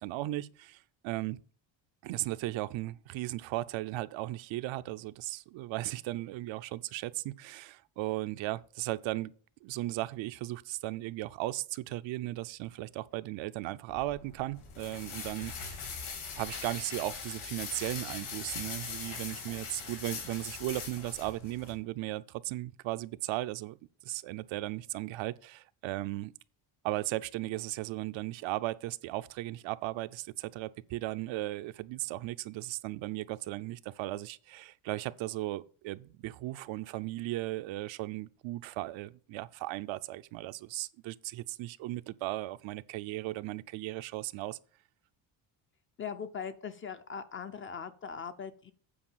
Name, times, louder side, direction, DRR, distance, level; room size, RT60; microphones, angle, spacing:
voice 1, 0.0-1.4 2.0-9.3 9.6-15.7 16.4-23.8 24.0-26.3 26.8-44.6, right 17 dB, 70° right, 0.6 m, -36 dB
sound 1, 13.9-21.7, left 5 dB, 75° left, 3.6 m, -41 dB
voice 2, 46.0-48.7, left 6 dB, 25° left, 0.4 m, -40 dB
8.7 x 4.7 x 7.2 m
cardioid pair, 160°, 48 cm